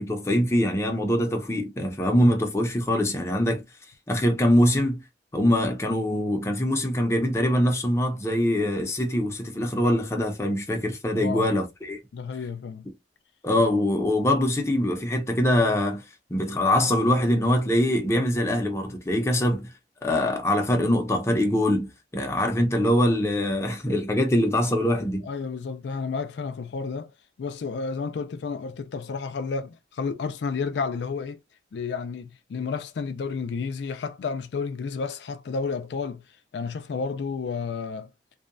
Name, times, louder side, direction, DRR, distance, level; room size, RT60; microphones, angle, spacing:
voice 1, 0.0-3.6 4.1-5.0 5.3-12.0 13.4-16.0 16.3-19.7 20.0-25.3, left 1 dB, 15° left, 0.5 m, -23 dB
voice 2, 11.1-11.5 12.1-12.9 25.2-27.1 27.4-31.4 31.7-36.2 36.5-38.1, left 5 dB, 80° left, 0.4 m, -31 dB
2.6 x 2.2 x 2.5 m
head